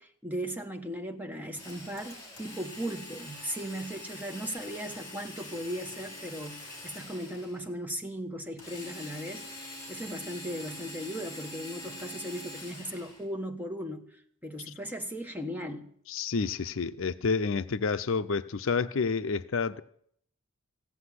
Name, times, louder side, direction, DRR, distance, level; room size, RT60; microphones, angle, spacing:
voice 1, 0.0-14.1 14.4-15.9, equal, 10° right, 1.1 m, -37 dB
Drill, 1.6-7.6 8.6-13.2, left 1 dB, 15° left, 6.0 m, -44 dB
voice 2, 16.1-19.8, left 5 dB, 60° left, 0.5 m, -29 dB
15.5 x 8.1 x 9.8 m
head